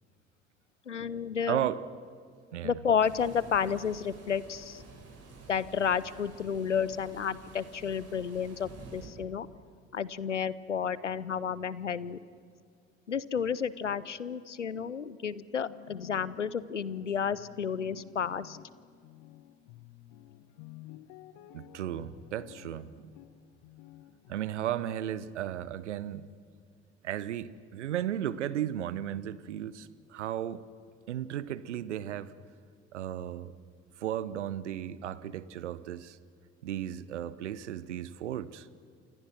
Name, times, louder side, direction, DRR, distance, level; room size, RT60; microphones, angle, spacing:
voice 1, 0.9-1.7 2.6-4.8 5.5-9.5 9.9-12.2 13.1-18.6, left 7 dB, 90° left, 19 dB, 0.7 m, -31 dB
voice 2, 1.5-1.8 2.5-2.8 21.5-23.1 24.3-26.3 27.0-30.6 31.1-32.3 32.9-33.5 34.0-36.2 36.6-38.7, right 11 dB, 75° right, 18 dB, 0.9 m, -35 dB
sound 1, 3.0-9.1, right 3 dB, 45° right, 6.8 m, -50 dB
sound 2, 15.6-24.8, left 13 dB, 60° left, 1.3 m, -52 dB
29.0 x 28.0 x 6.2 m, 2.2 s
figure-of-eight pair, 55°, 35 cm